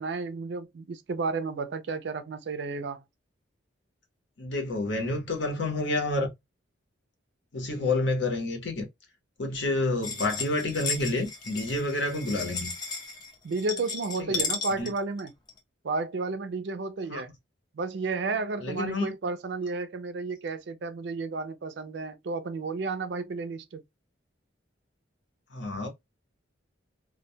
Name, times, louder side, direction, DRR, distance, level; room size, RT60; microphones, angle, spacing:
voice 1, 0.0-3.0 7.8-8.0 13.4-15.3 15.8-17.3 17.7-23.8, right 3 dB, 60° right, 0.4 m, -32 dB
voice 2, 4.4-6.3 7.5-8.8 9.4-12.7 14.2-14.4 14.8-14.9 17.1-17.2 18.6-19.1 25.5-25.9, left 2 dB, 65° left, 0.8 m, -29 dB
sound 1, 10.0-15.6, left 4 dB, 20° left, 0.4 m, -35 dB
2.2 x 2.1 x 2.6 m
head